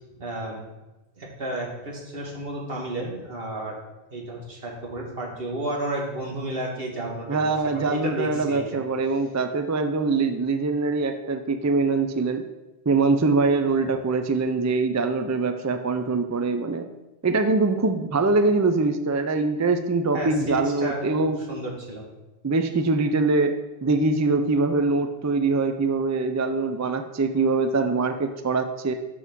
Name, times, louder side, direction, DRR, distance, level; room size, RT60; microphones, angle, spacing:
voice 1, 0.2-0.6 1.2-3.8 4.1-8.8 13.8-13.9 20.1-21.2 21.5-22.1, right 1 dB, 70° right, -2 dB, 2.0 m, -32 dB
voice 2, 7.3-12.4 12.9-16.9 17.2-21.4 22.4-28.9, right 3 dB, 30° right, 8 dB, 0.3 m, -23 dB
6.2 x 5.6 x 6.1 m, 1.0 s
omnidirectional pair, 1.0 m